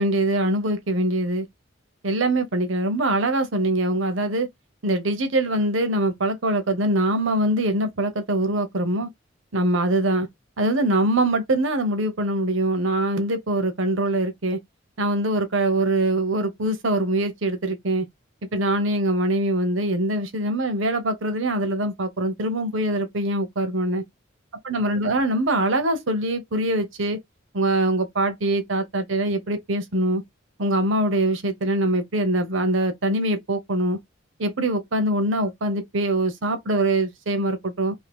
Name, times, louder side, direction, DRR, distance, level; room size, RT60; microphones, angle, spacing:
voice 1, 0.0-1.5 2.0-4.5 4.8-9.1 9.5-10.3 10.6-14.6 15.0-18.1 18.5-24.0 24.6-27.2 27.5-30.2 30.6-34.0 34.4-37.9, right 1 dB, 75° right, 0.9 m, -23 dB
2.8 x 2.7 x 3.4 m
head